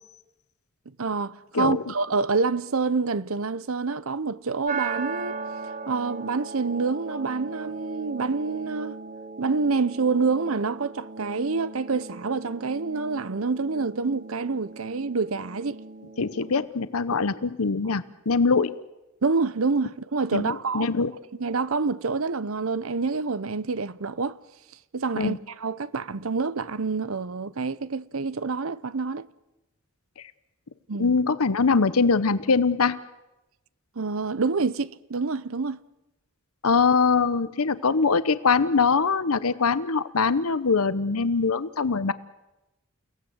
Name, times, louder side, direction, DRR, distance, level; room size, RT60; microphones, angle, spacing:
voice 1, 1.0-5.4 5.9-9.0 9.4-15.8 19.2-20.9 21.4-24.4 24.9-29.3 30.9-31.1 34.0-35.8, right 4 dB, 75° right, 0.8 m, -27 dB
sound 1, 4.7-16.7, right 4 dB, 35° right, 1.4 m, -38 dB
voice 2, 16.2-18.7 20.3-21.1 25.1-25.4 31.0-33.0 36.6-42.1, left 4 dB, 90° left, 0.9 m, -23 dB
29.5 x 17.5 x 7.9 m
head